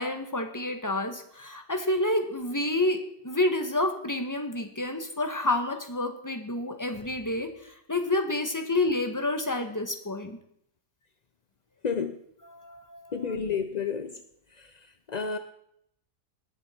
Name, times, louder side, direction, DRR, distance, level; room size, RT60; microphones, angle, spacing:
voice 1, 0.0-10.4 12.5-13.3, left 2 dB, 10° left, 5 dB, 1.4 m, -29 dB
voice 2, 11.8-12.2 13.1-14.2 14.5-15.4, left 6 dB, 50° left, 9 dB, 0.5 m, -31 dB
19.0 x 10.5 x 4.5 m, 0.73 s
omnidirectional pair, 1.7 m